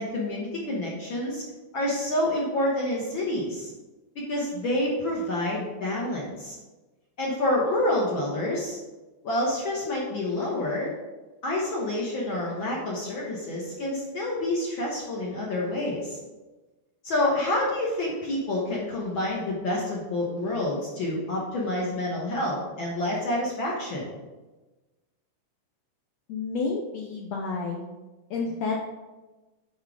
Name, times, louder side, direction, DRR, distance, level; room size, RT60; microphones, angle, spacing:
voice 1, 0.0-1.4 1.7-3.7 4.3-6.6 7.2-8.8 9.2-10.9 11.4-16.2 17.0-24.1, left 1 dB, 60° left, -3 dB, 1.3 m, -28 dB
voice 2, 26.3-27.8 28.3-28.8, left 4 dB, 75° left, 0 dB, 1.6 m, -30 dB
9.3 x 4.5 x 4.9 m, 1.2 s
omnidirectional pair, 3.8 m